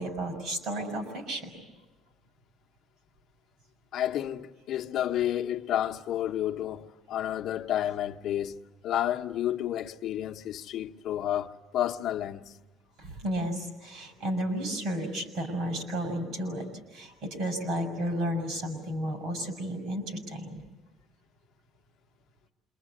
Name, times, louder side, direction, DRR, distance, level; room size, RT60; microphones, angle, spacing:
voice 1, 0.0-1.5 13.0-16.6 16.9-20.6, equal, 60° right, 6.7 m, -32 dB
voice 2, 3.9-8.6 8.8-12.6, left 11 dB, 55° left, 1.0 m, -31 dB
27.5 x 24.5 x 8.6 m
cardioid pair, 165°, 0 cm